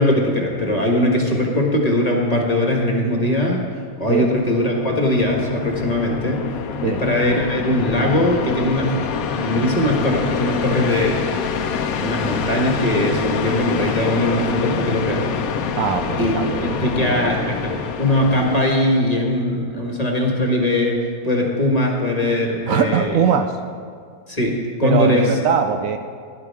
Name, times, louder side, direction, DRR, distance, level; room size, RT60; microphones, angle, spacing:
voice 1, 0.0-3.7 4.0-6.5 6.8-9.0 9.3-11.3 12.0-15.3 16.2-16.4 16.6-23.2 24.3-25.4, left 1 dB, 25° left, -1 dB, 1.5 m, -20 dB
sound 1, 4.2-18.6, left 6 dB, 75° left, 1.1 m, -26 dB
voice 2, 15.8-17.3 22.7-23.5 24.8-26.0, right 7 dB, 70° right, 7 dB, 0.9 m, -21 dB
16.0 x 11.0 x 3.6 m, 2.1 s
omnidirectional pair, 1.6 m